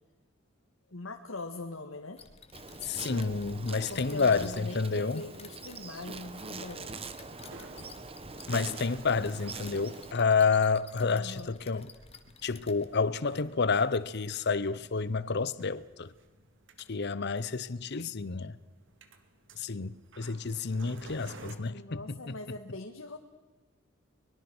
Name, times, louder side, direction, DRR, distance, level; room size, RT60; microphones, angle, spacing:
voice 1, 0.9-2.2 3.9-7.2 11.0-11.6 21.6-23.2, left 2 dB, 85° left, 1.8 m, -42 dB
sound 1, 2.2-12.9, left 6 dB, 30° left, 1.8 m, -54 dB
Insect, 2.5-10.1, right 3 dB, 30° right, 1.3 m, -43 dB
voice 2, 2.8-5.2 8.5-11.9 12.4-16.1 16.9-18.6 19.6-22.4, left 4 dB, 55° left, 0.8 m, -29 dB
sound 2, 7.2-21.6, right 2 dB, 65° right, 2.5 m, -55 dB
24.0 x 22.0 x 6.2 m
head